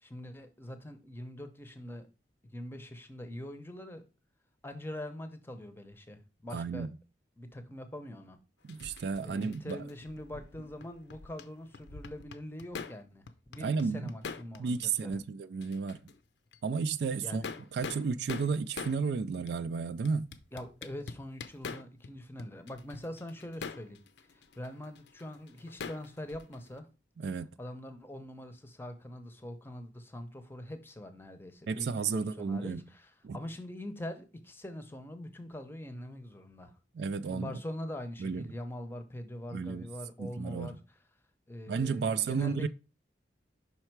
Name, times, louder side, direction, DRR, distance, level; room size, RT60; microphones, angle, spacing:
voice 1, 0.0-2.1 2.4-4.0 4.6-6.9 7.4-8.4 8.8-15.2 17.2-17.5 20.5-26.9 27.6-36.8 37.3-40.8 41.5-42.7, left 1 dB, 10° left, 0.7 m, -43 dB
voice 2, 6.5-6.9 8.6-9.8 13.6-14.1 14.6-16.0 16.6-17.4 17.7-20.3 27.2-27.5 31.7-32.8 33.2-33.4 36.9-37.5 38.2-38.4 39.5-39.9 40.2-40.8 41.7-42.7, right 5 dB, 65° right, 0.3 m, -32 dB
sound 1, 8.7-11.5 11.7-13.0 13.3-14.9 15.1-15.2 15.6-16.2 16.5-16.6 17.2-19.0 19.5-19.6 20.1-22.1 22.4-26.8, left 5 dB, 70° left, 0.6 m, -44 dB
5.6 x 4.5 x 4.5 m
head